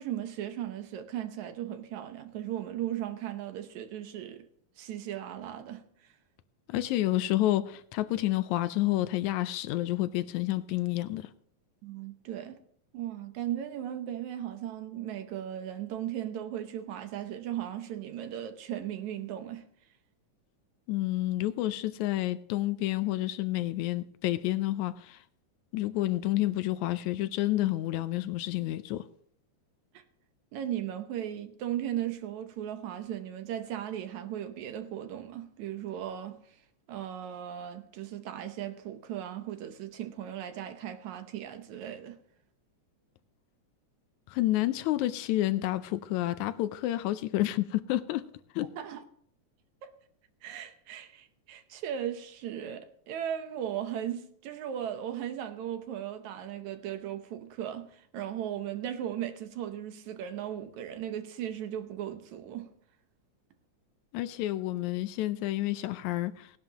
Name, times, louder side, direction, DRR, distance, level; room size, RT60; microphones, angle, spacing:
voice 1, 0.0-4.5 4.8-6.1 11.8-12.6 12.9-19.7 29.9-30.0 30.5-36.6 36.9-42.2 48.8-49.0 49.8-49.9 50.4-62.7, right 10 dB, 75° right, 2.3 m, -37 dB
voice 2, 6.7-11.3 20.9-25.2 25.7-29.0 44.3-48.2 48.6-48.7 64.1-66.5, left 15 dB, 80° left, 1.9 m, -29 dB
18.0 x 11.0 x 2.9 m
omnidirectional pair, 3.4 m